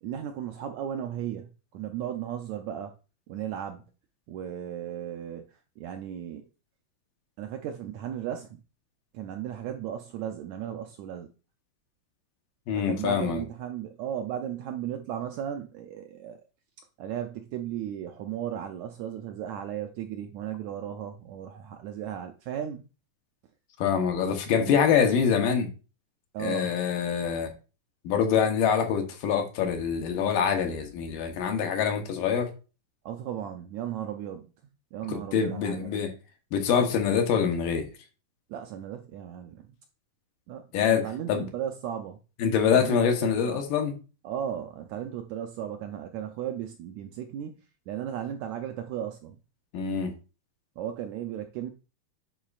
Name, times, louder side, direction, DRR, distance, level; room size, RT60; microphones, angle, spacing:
voice 1, 0.0-2.9 3.3-3.9 4.3-6.4 7.4-8.6 9.1-11.3 12.8-16.4 17.0-22.8 24.6-24.8 26.3-26.7 33.0-34.5 34.9-36.0 38.5-39.7 40.5-42.2 42.6-43.6 44.2-47.6 47.9-49.4 50.8-51.7, right 10 dB, 80° right, 1.6 m, -35 dB
voice 2, 12.7-13.4 23.8-25.7 26.4-27.5 28.0-32.5 35.1-36.1 36.5-37.9 40.7-41.5 42.4-43.9 49.7-50.1, left 7 dB, 90° left, 2.7 m, -25 dB
10.5 x 4.1 x 2.4 m
omnidirectional pair, 3.8 m